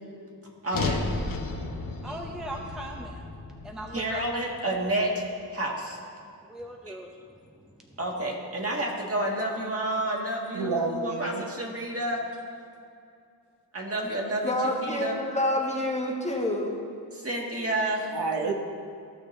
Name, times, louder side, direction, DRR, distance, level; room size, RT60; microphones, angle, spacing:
voice 1, 0.6-1.1 3.9-5.2 5.5-6.0 6.8-6.9 8.0-12.2 13.7-14.5 14.8-15.2 17.1-18.1, right 1 dB, 35° right, -1 dB, 1.7 m, -30 dB
sound 1, 0.7-5.0, left 3 dB, 55° left, 1.1 m, -34 dB
voice 2, 2.0-3.2 3.6-4.2 6.5-7.1 7.9-8.0 10.6-10.7, right 1 dB, ahead, 0 dB, 0.7 m, -39 dB
voice 3, 10.5-11.4 18.1-18.5, right 4 dB, 75° right, 3 dB, 1.0 m, -29 dB
voice 4, 14.4-16.8, left 1 dB, 15° left, -1 dB, 1.2 m, -27 dB
15.0 x 6.6 x 3.2 m, 2.5 s
wide cardioid pair, 100°, 41 cm